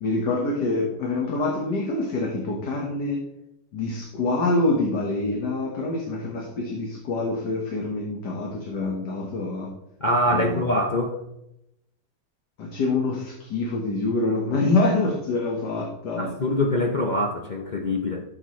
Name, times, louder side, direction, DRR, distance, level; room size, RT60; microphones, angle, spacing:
voice 1, 0.0-3.2 3.7-9.7 10.3-10.6 12.6-16.3, left 2 dB, 70° left, -1 dB, 2.0 m, -26 dB
voice 2, 10.0-11.2 16.2-18.2, left 1 dB, 45° left, 1 dB, 0.5 m, -24 dB
12.5 x 7.2 x 3.2 m, 0.83 s
omnidirectional pair, 1.9 m